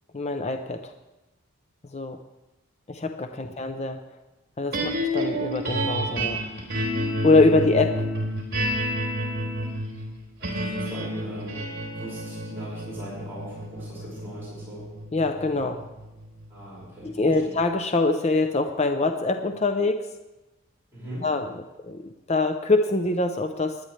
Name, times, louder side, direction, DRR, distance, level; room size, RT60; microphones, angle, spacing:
voice 1, 0.1-0.9 1.9-2.2 2.9-4.0 4.6-6.4 7.2-8.1 15.1-15.8 17.0-20.1 21.2-23.8, left 3 dB, 30° left, 6 dB, 0.6 m, -24 dB
sound 1, 4.7-17.0, equal, 50° right, 3.7 m, -30 dB
voice 2, 10.4-11.6 11.9-14.8 16.5-17.6 20.9-21.3, right 1 dB, 10° right, -9 dB, 5.6 m, -39 dB
20.0 x 10.5 x 3.2 m, 1.0 s
head